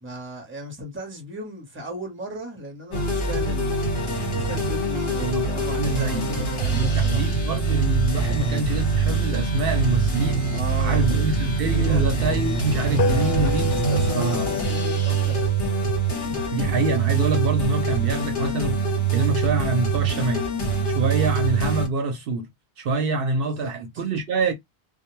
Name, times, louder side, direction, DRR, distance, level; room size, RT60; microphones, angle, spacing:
voice 1, 0.0-3.8 4.3-7.3 10.5-11.2 11.6-12.1 12.9-16.6 23.6-23.7, right 1 dB, 15° right, 0.8 m, -36 dB
sound 1, 2.9-21.9, right 4 dB, 60° left, 1.2 m, -24 dB
voice 2, 5.2-6.3 6.7-10.4 10.8-13.7 14.1-14.5 16.5-20.4 20.8-22.5 22.8-24.5, right 3 dB, 70° right, 0.7 m, -26 dB
sound 2, 13.0-17.6, left 5 dB, 80° left, 0.8 m, -31 dB
2.2 x 2.1 x 3.0 m
omnidirectional pair, 1.0 m